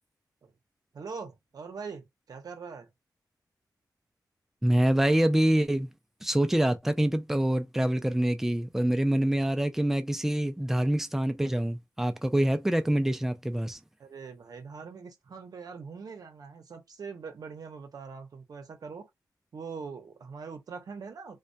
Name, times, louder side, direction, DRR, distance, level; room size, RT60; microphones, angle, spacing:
voice 1, 0.9-2.9 14.0-19.1 19.5-21.4, right 5 dB, 60° right, 0.7 m, -42 dB
voice 2, 4.6-5.9 6.2-13.8, right 1 dB, 5° right, 0.3 m, -25 dB
2.2 x 2.1 x 2.6 m
wide cardioid pair, 145°, 7 cm